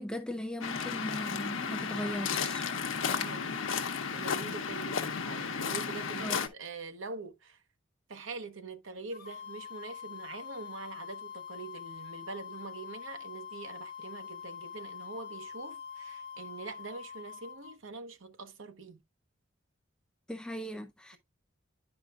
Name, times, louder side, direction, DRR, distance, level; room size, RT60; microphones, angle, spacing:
voice 1, 0.0-2.7 6.2-6.4 20.3-21.2, equal, 5° left, 0.4 m, -38 dB
Waves surf, 0.6-6.5, left 6 dB, 85° left, 0.9 m, -33 dB
voice 2, 3.1-3.5 4.1-7.6 8.1-19.0, right 4 dB, 85° right, 0.9 m, -44 dB
sound 1, 9.1-17.8, left 7 dB, 45° left, 1.2 m, -45 dB
10.5 x 5.0 x 2.4 m
head